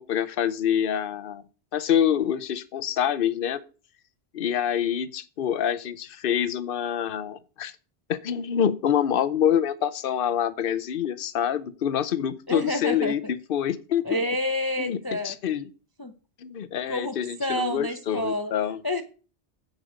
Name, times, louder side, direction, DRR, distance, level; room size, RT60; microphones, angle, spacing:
voice 1, 0.0-1.4 1.7-3.6 4.3-7.7 8.1-13.2 13.5-14.2 14.8-15.0 15.2-15.6 16.4-18.8, left 9 dB, 60° left, 0.9 m, -26 dB
voice 2, 12.5-13.3 14.0-15.3 16.0-16.1 16.9-18.5 18.8-19.0, left 1 dB, 20° left, 0.8 m, -29 dB
10.5 x 8.0 x 5.1 m
omnidirectional pair, 1.1 m